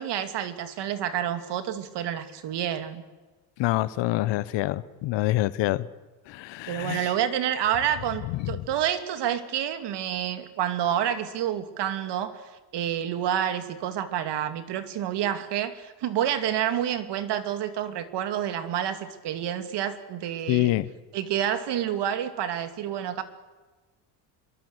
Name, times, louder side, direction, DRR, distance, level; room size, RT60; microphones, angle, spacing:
voice 1, 0.0-3.0 4.1-4.3 6.7-20.8 21.1-23.2, right 10 dB, 60° right, 10 dB, 2.6 m, -29 dB
voice 2, 3.6-5.9 6.3-7.1 8.3-8.4 20.5-20.9, left 17 dB, 70° left, 17 dB, 1.2 m, -26 dB
27.0 x 22.5 x 8.2 m, 1.2 s
cardioid pair, 110°, 45 cm